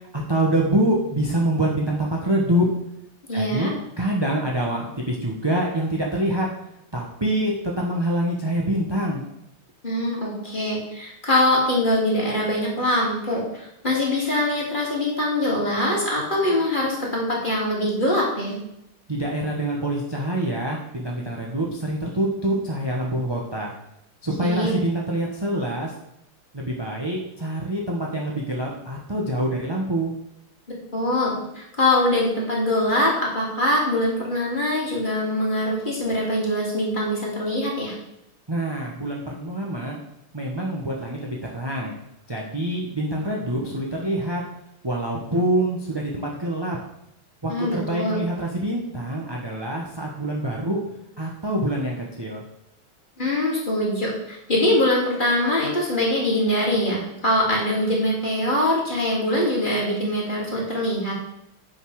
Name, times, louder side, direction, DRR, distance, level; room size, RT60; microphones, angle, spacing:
voice 1, 0.0-2.7 3.3-6.5 6.9-9.2 19.1-23.7 24.2-25.9 26.5-30.1 38.5-40.0 40.3-41.9 42.3-44.4 44.8-46.8 47.4-50.8 51.2-52.4, right 1 dB, 15° right, -2 dB, 0.9 m, -25 dB
voice 2, 3.3-3.7 9.8-18.5 24.4-24.7 30.9-37.9 47.5-48.2 53.2-61.1, left 1 dB, 20° left, -4 dB, 3.0 m, -23 dB
9.1 x 5.6 x 6.4 m, 0.81 s
omnidirectional pair, 2.3 m